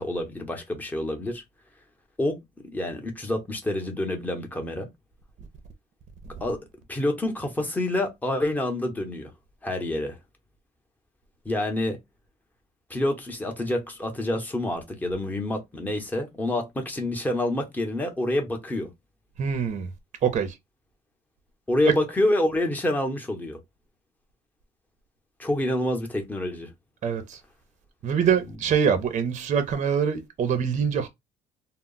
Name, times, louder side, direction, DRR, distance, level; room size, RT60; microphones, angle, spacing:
voice 1, 0.0-1.4 2.2-2.4 2.7-4.9 6.4-6.6 6.9-9.3 9.6-10.2 11.4-12.0 12.9-18.9 21.7-23.6 25.4-26.7, left 1 dB, 10° left, 0.8 m, -27 dB
voice 2, 19.4-19.9 20.2-20.6 21.9-22.0 27.0-27.4 28.0-31.1, right 7 dB, 45° right, 0.6 m, -24 dB
2.2 x 2.0 x 3.7 m
cardioid pair, 110°, 17 cm